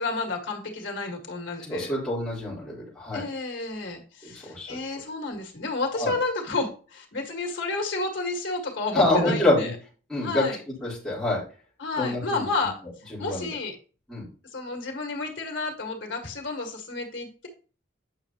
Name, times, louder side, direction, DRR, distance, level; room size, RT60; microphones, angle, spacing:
voice 1, 0.0-1.9 3.1-9.7 10.2-10.6 11.8-12.8 13.2-13.8 14.5-17.5, left 3 dB, 80° left, 3 dB, 1.8 m, -31 dB
voice 2, 1.7-3.2 4.2-4.7 5.9-6.1 8.9-9.7 10.1-10.5 10.8-11.4 12.0-12.4 13.1-13.5 14.1-14.3, left 1 dB, ahead, -9 dB, 3.9 m, -26 dB
8.8 x 5.7 x 2.9 m, 0.37 s
head